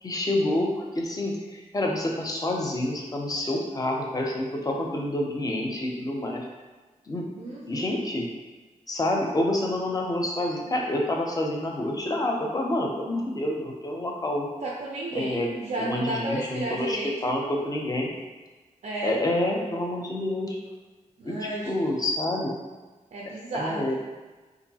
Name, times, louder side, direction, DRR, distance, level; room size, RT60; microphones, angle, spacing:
voice 1, 0.0-6.5 7.1-7.3 7.7-8.3 8.9-14.5 15.1-15.5 15.8-18.1 19.0-20.6 21.2-22.5 23.5-24.0, left 1 dB, 25° left, 0 dB, 0.5 m, -28 dB
voice 2, 7.4-8.0 14.6-17.1 18.8-19.2 21.2-21.7 23.1-24.0, right 2 dB, 65° right, -4 dB, 0.4 m, -32 dB
3.8 x 2.5 x 2.7 m, 1.3 s
wide cardioid pair, 145°, 14 cm